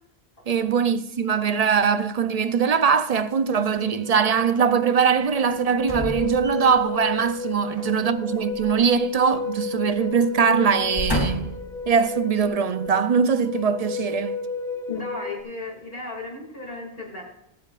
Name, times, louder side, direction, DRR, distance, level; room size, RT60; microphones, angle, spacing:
voice 1, 0.5-11.5 11.9-14.4, right 6 dB, 45° right, 0.6 m, -22 dB
sound 1, 2.5-2.6 2.9-15.4, left 3 dB, 45° left, 1.4 m, -32 dB
sound 2, 5.8-7.0 8.5-9.7 10.0-10.2 10.7-11.7 12.4-12.5, left 1 dB, 20° left, 2.2 m, -31 dB
voice 2, 14.9-17.2, left 3 dB, 60° left, 2.7 m, -35 dB
23.5 x 8.5 x 2.5 m
omnidirectional pair, 1.1 m